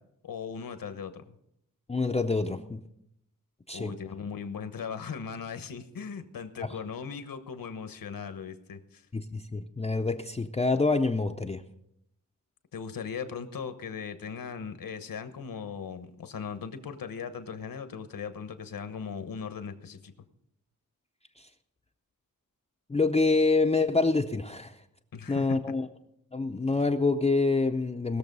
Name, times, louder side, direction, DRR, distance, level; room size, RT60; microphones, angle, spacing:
voice 1, 0.2-1.4 3.7-9.0 12.7-20.1 25.1-25.6, left 6 dB, 80° left, 10 dB, 1.2 m, -38 dB
voice 2, 1.9-2.8 3.7-3.9 6.6-6.7 9.1-11.6 21.4-21.5 22.9-24.8 25.3-25.9 26.3-28.2, left 3 dB, 20° left, 4 dB, 0.5 m, -26 dB
19.5 x 6.9 x 5.4 m, 0.77 s
wide cardioid pair, 150°, 34 cm